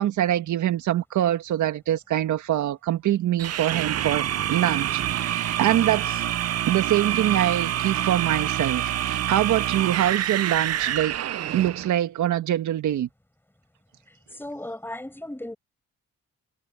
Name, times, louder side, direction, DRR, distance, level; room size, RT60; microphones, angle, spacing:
voice 1, 0.0-6.2 6.7-11.1 11.5-13.1, right 12 dB, 75° right, 1.7 m, -24 dB
sound 1, 3.4-11.9, right 11 dB, 55° right, 0.7 m, -27 dB
voice 2, 14.3-15.6, left 1 dB, 5° left, 6.9 m, -35 dB
cardioid pair, 90°, 30 cm